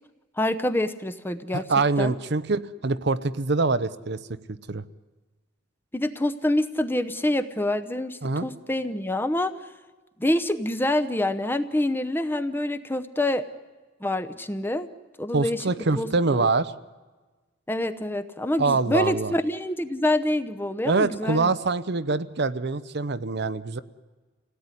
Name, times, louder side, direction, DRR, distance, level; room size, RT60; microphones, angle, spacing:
voice 1, 0.4-1.6 2.0-2.1 5.9-9.6 10.2-13.5 14.0-14.9 15.2-15.6 16.0-16.1 16.4-16.5 17.7-21.5, left 1 dB, 10° left, 9 dB, 0.8 m, -26 dB
voice 2, 1.5-4.2 4.7-4.8 8.2-8.5 15.3-16.7 18.6-19.3 20.8-23.8, right 3 dB, 55° right, 13 dB, 0.7 m, -24 dB
26.5 x 17.5 x 9.8 m, 1.3 s
head